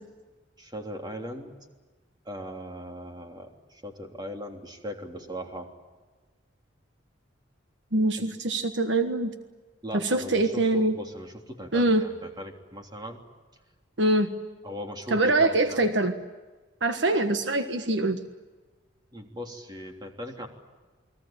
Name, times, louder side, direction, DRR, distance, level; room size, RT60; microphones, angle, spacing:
voice 1, 0.6-1.5 2.2-5.7 8.2-8.3 9.8-13.2 14.6-15.9 19.1-20.5, equal, 20° right, 3 dB, 3.3 m, -39 dB
voice 2, 7.9-9.3 9.9-11.0 11.7-12.1 14.0-14.3 15.1-16.1 16.8-18.2, right 2 dB, 65° right, 8 dB, 1.5 m, -24 dB
29.5 x 21.5 x 9.0 m, 1.3 s
head